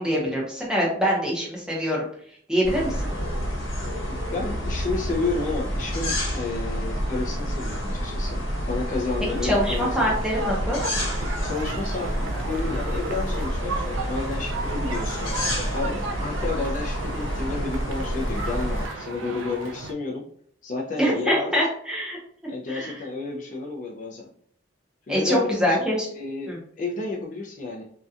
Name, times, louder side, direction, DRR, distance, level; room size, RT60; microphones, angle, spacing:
voice 1, 0.0-2.0 2.5-3.1 9.4-10.8 21.0-22.2 22.7-22.9 25.1-26.1 26.5-26.6, equal, 5° right, -4 dB, 0.6 m, -24 dB
sound 1, 2.6-18.9, equal, 80° left, 1.0 m, -29 dB
voice 2, 4.1-8.4 8.7-10.1 11.4-15.3 15.7-20.2 20.6-21.5 22.5-24.3 25.1-25.9 26.2-27.8, left 3 dB, 40° left, -1 dB, 0.3 m, -31 dB
sound 2, 9.3-19.9, right 2 dB, 75° right, 0.3 m, -35 dB
2.7 x 2.2 x 2.3 m, 0.62 s
head